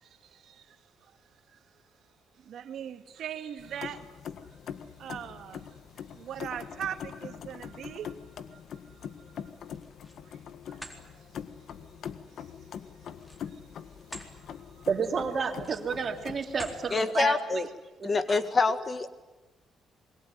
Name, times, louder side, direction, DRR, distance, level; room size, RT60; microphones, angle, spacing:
voice 1, 0.0-0.7 2.5-4.2 5.0-5.8 6.1-8.1 8.5-8.6 8.9-9.0 10.7-11.0 11.8-11.9 13.5-13.6 14.8-14.9, right 9 dB, 70° right, 7 dB, 1.9 m, -40 dB
sound 1, 3.6-17.0, left 8 dB, 70° left, 1.5 m, -43 dB
sound 2, 9.7-10.2 10.7-11.0 13.1-14.3 14.8-15.0 15.5-16.0 16.5-16.9, equal, 10° left, 4.0 m, -45 dB
voice 2, 14.9-17.7 18.0-18.1, right 5 dB, 45° right, 5 dB, 3.0 m, -30 dB
voice 3, 16.9-17.7 18.0-19.1, left 4 dB, 35° left, 11 dB, 1.8 m, -26 dB
26.5 x 22.0 x 9.5 m, 1.1 s
cardioid pair, 90°, 0 cm